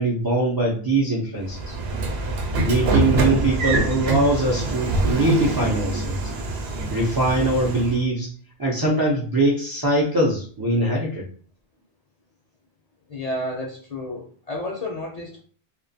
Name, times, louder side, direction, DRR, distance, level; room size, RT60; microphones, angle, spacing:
voice 1, 0.0-1.8 2.6-6.2 6.9-8.3 8.6-11.3, right 2 dB, 40° right, -4 dB, 0.3 m, -22 dB
Train / Sliding door, 1.5-8.0, right 2 dB, 85° right, 0.8 m, -25 dB
voice 2, 13.1-15.4, left 1 dB, 55° left, -1 dB, 0.5 m, -31 dB
2.4 x 2.1 x 2.6 m, 0.43 s
omnidirectional pair, 1.0 m